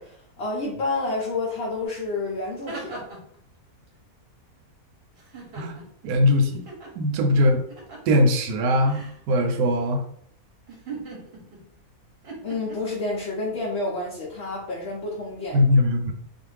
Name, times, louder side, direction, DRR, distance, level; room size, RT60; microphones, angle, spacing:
voice 1, 0.0-3.1 12.4-15.6, left 2 dB, 60° left, -3 dB, 0.7 m, -29 dB
sound 1, 1.8-1.9 2.4-3.4 5.2-6.0 6.7-6.9 7.7-8.2 8.8-9.2 10.7-11.6 12.2-12.7, right 3 dB, 50° right, 0.9 m, -39 dB
voice 2, 6.0-6.7 7.0-7.6 8.1-10.0 15.5-16.1, left 1 dB, 80° right, 5 dB, 1.1 m, -20 dB
2.5 x 2.5 x 3.1 m, 0.65 s
omnidirectional pair, 1.6 m